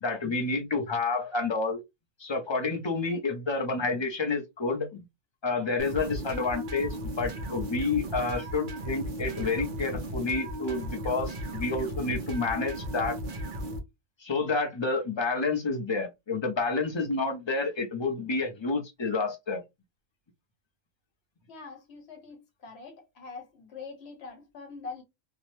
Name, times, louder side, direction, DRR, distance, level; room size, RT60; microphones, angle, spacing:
voice 1, 0.0-1.8 2.2-5.0 5.4-13.2 14.2-19.6, left 3 dB, 35° left, 0.5 m, -29 dB
sound 1, 5.8-13.8, equal, 50° right, 0.7 m, -36 dB
voice 2, 21.5-25.0, left 4 dB, 55° left, 1.2 m, -44 dB
2.7 x 2.1 x 3.1 m
omnidirectional pair, 1.3 m